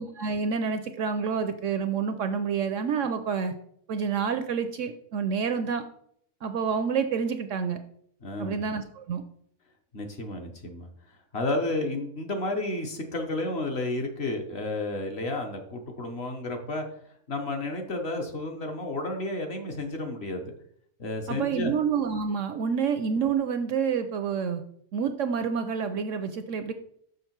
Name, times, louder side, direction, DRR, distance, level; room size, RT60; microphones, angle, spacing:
voice 1, 0.0-3.5 3.9-5.8 6.4-7.8 8.4-9.2 21.3-24.6 24.9-26.7, right 6 dB, 70° right, 9 dB, 0.8 m, -28 dB
voice 2, 8.2-8.6 9.9-10.9 11.3-16.8 17.3-20.5 21.0-21.7, left 2 dB, 50° left, 3 dB, 1.1 m, -31 dB
6.5 x 6.1 x 4.5 m, 0.67 s
omnidirectional pair, 1.6 m